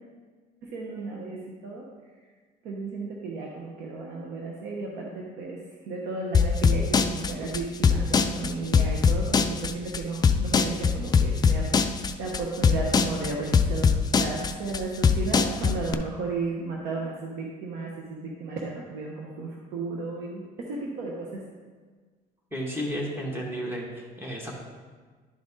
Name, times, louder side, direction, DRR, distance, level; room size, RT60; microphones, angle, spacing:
voice 1, 0.6-1.8 2.6-5.6 5.9-11.7 12.2-13.9 14.2-21.4, right 3 dB, 85° right, -2 dB, 1.0 m, -34 dB
sound 1, 6.3-15.9, left 5 dB, 25° left, 0.4 m, -21 dB
voice 2, 22.5-24.5, equal, 15° right, -2 dB, 1.7 m, -32 dB
11.0 x 4.0 x 3.7 m, 1.4 s
cardioid pair, 110°, 17 cm